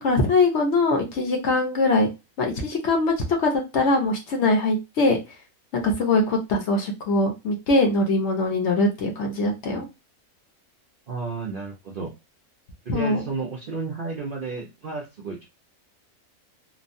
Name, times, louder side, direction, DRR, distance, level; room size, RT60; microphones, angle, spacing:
voice 1, 0.0-2.1 2.4-3.1 3.4-5.2 5.7-9.9 12.9-13.2, left 2 dB, 55° left, 2 dB, 0.9 m, -22 dB
voice 2, 11.1-12.1 12.8-15.4, right 4 dB, 60° right, -2 dB, 0.5 m, -32 dB
3.0 x 2.1 x 2.6 m, 0.24 s
omnidirectional pair, 1.5 m